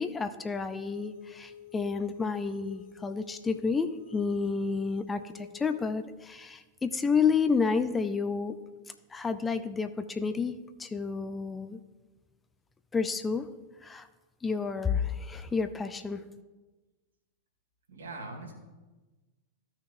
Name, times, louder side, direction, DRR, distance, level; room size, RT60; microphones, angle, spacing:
voice 1, 0.0-8.6 9.1-11.8 12.9-13.5 13.8-14.1 14.4-16.3, left 5 dB, 15° left, 10 dB, 0.5 m, -30 dB
sound 1, 0.7-5.8, left 7 dB, 55° left, 1.5 m, -49 dB
voice 2, 17.9-18.5, right 2 dB, 70° right, 1 dB, 2.1 m, -41 dB
15.0 x 5.9 x 2.6 m, 1.2 s
figure-of-eight pair, 90°, 0 cm